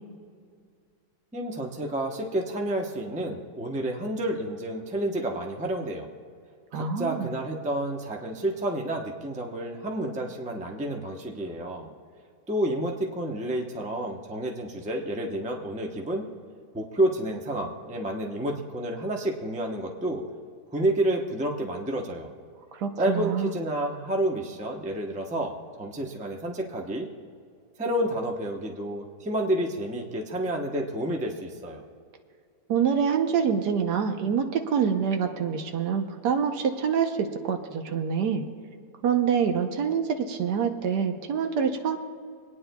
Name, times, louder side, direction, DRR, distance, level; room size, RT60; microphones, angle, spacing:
voice 1, 1.3-6.1 6.7-11.9 12.5-16.3 16.7-20.2 20.7-22.3 23.0-27.1 27.8-31.8, right 1 dB, 10° right, 1 dB, 0.5 m, -30 dB
voice 2, 6.7-7.3 22.7-23.5 32.7-38.4 39.0-42.0, right 7 dB, 75° right, 6 dB, 1.4 m, -26 dB
26.0 x 9.6 x 2.3 m, 2.2 s
omnidirectional pair, 1.8 m